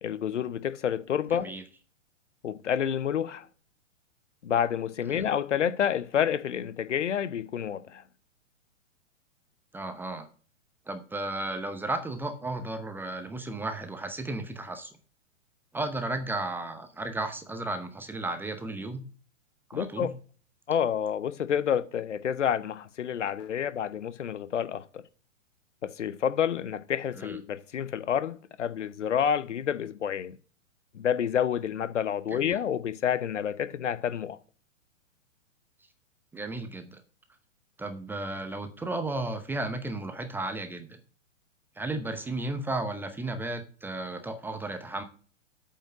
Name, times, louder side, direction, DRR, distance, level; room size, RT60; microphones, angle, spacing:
voice 1, 0.0-1.5 2.4-3.5 4.4-8.0 19.7-20.1 20.7-25.0 25.8-30.4 30.9-34.4, left 8 dB, 65° left, 0.9 m, -29 dB
voice 2, 1.3-1.6 5.1-5.2 9.7-10.3 10.9-14.9 15.7-19.0 19.7-20.1 27.2-27.4 32.3-32.6 36.3-37.0 37.8-41.0 41.8-45.0, right 2 dB, 5° right, 0.7 m, -34 dB
8.6 x 5.6 x 7.5 m
figure-of-eight pair, 115°, 38 cm